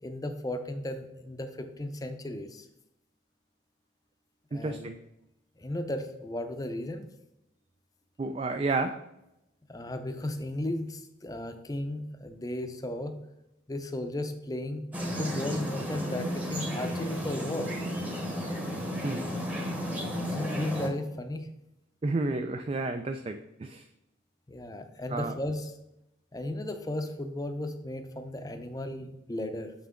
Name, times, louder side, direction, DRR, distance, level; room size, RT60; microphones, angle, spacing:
voice 1, 0.0-2.7 4.5-4.9 5.6-7.0 9.7-13.2 13.7-14.8 15.1-17.8 20.2-21.5 24.5-25.7 26.3-29.7, left 1 dB, 20° left, 8 dB, 0.5 m, -35 dB
voice 2, 4.5-5.0 8.2-9.0 19.0-19.2 22.0-23.9 25.1-25.3, right 3 dB, 30° right, 6 dB, 0.3 m, -31 dB
sound 1, 14.9-20.9, equal, 10° right, 0.9 m, -33 dB
7.1 x 5.7 x 3.7 m, 0.87 s
head